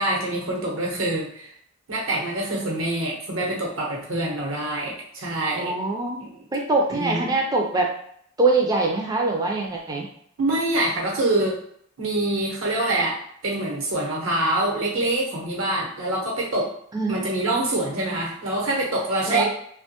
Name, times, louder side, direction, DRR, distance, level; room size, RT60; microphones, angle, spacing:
voice 1, 0.0-1.5 1.9-5.8 6.2-6.5 7.0-7.3 10.4-11.6 12.0-16.7 17.1-19.5, right 1 dB, 75° right, -2 dB, 0.9 m, -25 dB
voice 2, 5.5-7.9 8.4-10.1 16.9-17.2 19.3-19.5, right 3 dB, 20° right, 0 dB, 0.3 m, -23 dB
2.9 x 2.2 x 2.8 m, 0.66 s
head